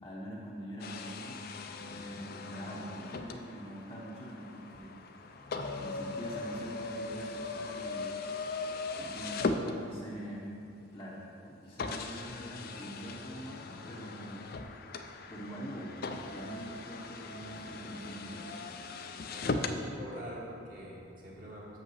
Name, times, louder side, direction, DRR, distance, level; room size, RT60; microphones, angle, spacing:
voice 1, 0.0-1.4 1.9-5.1 5.7-8.1 8.9-10.5 10.9-14.5 15.3-18.6, equal, 15° left, -6 dB, 0.8 m, -44 dB
sound 1, 0.8-10.3 11.0-11.1 11.8-19.8, left 3 dB, 45° left, 0.4 m, -39 dB
sound 2, 5.2-8.9, left 1 dB, 10° right, 1.1 m, -52 dB
voice 2, 19.3-21.8, equal, 40° right, -5 dB, 1.8 m, -45 dB
6.7 x 5.5 x 6.2 m, 2.6 s
head